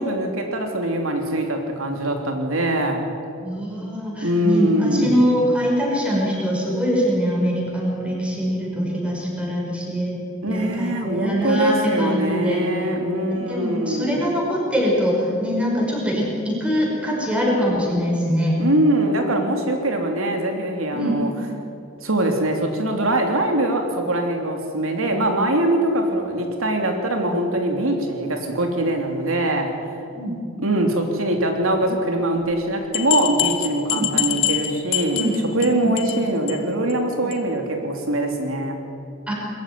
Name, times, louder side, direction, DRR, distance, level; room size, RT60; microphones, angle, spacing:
voice 1, 0.0-3.0 4.2-5.2 10.4-14.2 18.6-21.3 22.0-29.7 30.6-35.2 35.5-38.8, right 1 dB, 75° right, 3 dB, 3.1 m, -22 dB
voice 2, 3.4-10.2 10.5-12.6 13.3-18.6 20.9-21.2 30.1-30.3 33.9-34.1 35.1-35.4 35.7-36.2 37.2-37.3 39.3-39.4, equal, 5° right, -3 dB, 5.5 m, -23 dB
sound 1, 32.5-32.6 32.9-35.7 36.0-36.2 36.5-36.6 36.9-37.0 37.3-37.4, left 12 dB, 60° left, 1.6 m, -24 dB
21.5 x 14.5 x 9.5 m, 2.7 s
head